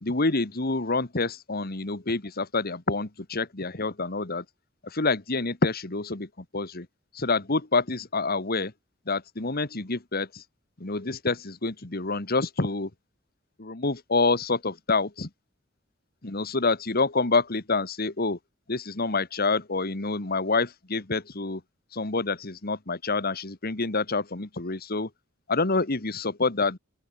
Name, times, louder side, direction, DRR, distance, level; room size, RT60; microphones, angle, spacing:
voice 1, 0.0-4.4 4.8-6.3 6.5-6.9 7.1-8.7 9.1-10.4 10.8-12.9 13.6-15.3 16.2-18.4 18.7-21.6 21.9-25.1 25.5-26.8, left 3 dB, 50° left, 1.8 m, -27 dB
open air
head